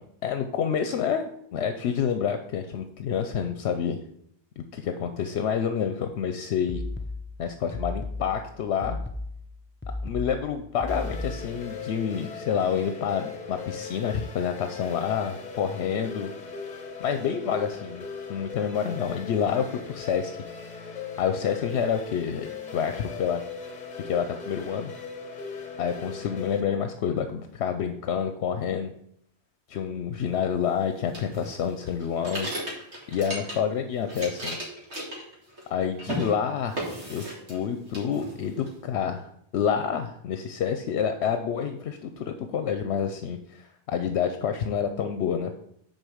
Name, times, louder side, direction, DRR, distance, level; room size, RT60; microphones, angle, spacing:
voice 1, 0.2-4.0 4.6-6.8 7.4-9.0 10.0-16.3 17.0-20.4 20.7-23.4 24.0-24.9 25.8-28.9 29.7-32.5 33.1-34.6 35.7-36.8 37.1-45.5, left 7 dB, 80° left, 7 dB, 0.9 m, -28 dB
sound 1, 6.7-11.7, left 2 dB, 20° left, 0.3 m, -35 dB
sound 2, 10.9-26.6, left 5 dB, 45° left, 1.0 m, -39 dB
sound 3, 31.1-33.8 34.0-35.7 36.0-36.3 36.8-37.6 37.9-38.7, right 1 dB, 80° right, 2.3 m, -35 dB
6.5 x 4.3 x 6.3 m, 0.69 s
omnidirectional pair, 1.1 m